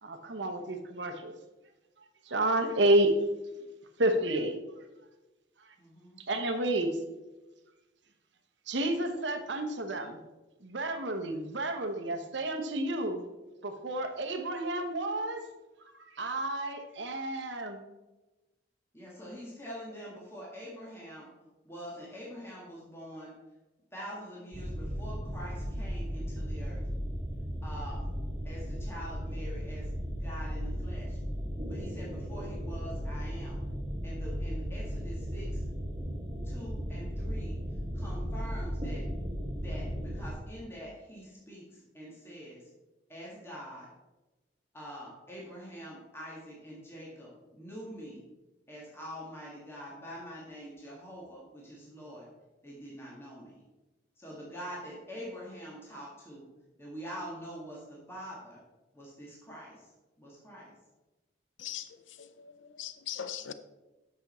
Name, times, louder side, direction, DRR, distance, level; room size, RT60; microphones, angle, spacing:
voice 1, 0.0-1.3 2.3-3.1 4.0-4.5 6.3-7.0 8.7-10.2 10.6-13.2 13.6-15.4 16.2-17.8, right 1 dB, 75° right, 6 dB, 1.1 m, -30 dB
voice 2, 5.8-6.2 18.9-21.3 21.6-23.3 23.9-26.8 27.6-28.1 28.4-31.2 31.7-33.6 34.0-35.6 36.4-37.6 37.9-39.1 39.5-42.7 43.1-43.9 44.7-48.2 48.7-52.3 52.6-53.6 54.2-56.4 56.8-58.6 58.9-59.9 60.2-60.7, equal, 15° left, -5 dB, 1.8 m, -45 dB
sound 1, 24.5-40.3, equal, 25° right, 1.8 m, -36 dB
voice 3, 61.6-61.9 62.2-63.5, left 9 dB, 90° left, 11 dB, 0.5 m, -40 dB
8.4 x 6.2 x 4.3 m, 1.1 s
head